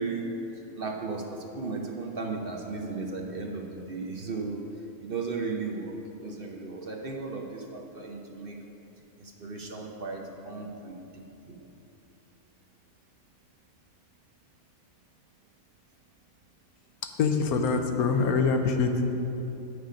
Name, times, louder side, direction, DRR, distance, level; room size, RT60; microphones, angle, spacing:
voice 1, 0.0-4.6 5.0-8.6 9.2-11.6, right 3 dB, 50° right, 1 dB, 0.8 m, -35 dB
voice 2, 17.2-19.1, left 4 dB, 90° left, 5 dB, 1.2 m, -24 dB
9.6 x 6.5 x 5.1 m, 3.0 s
omnidirectional pair, 1.5 m